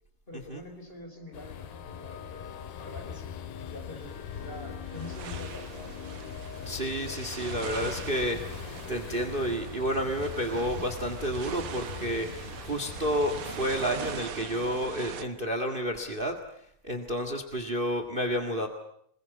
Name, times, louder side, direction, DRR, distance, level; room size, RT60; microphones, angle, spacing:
voice 1, 0.3-6.0, left 2 dB, 15° left, 4 dB, 4.1 m, -45 dB
sound 1, 0.9-11.8, left 8 dB, 60° left, 2.1 m, -48 dB
sound 2, 1.3-14.2, left 8 dB, 80° left, 3.5 m, -42 dB
sound 3, 3.9-15.2, right 8 dB, 75° right, 1.2 m, -42 dB
voice 2, 6.6-16.4 16.8-18.7, equal, 35° right, 6 dB, 0.8 m, -30 dB
27.0 x 21.5 x 8.3 m, 0.69 s
omnidirectional pair, 4.4 m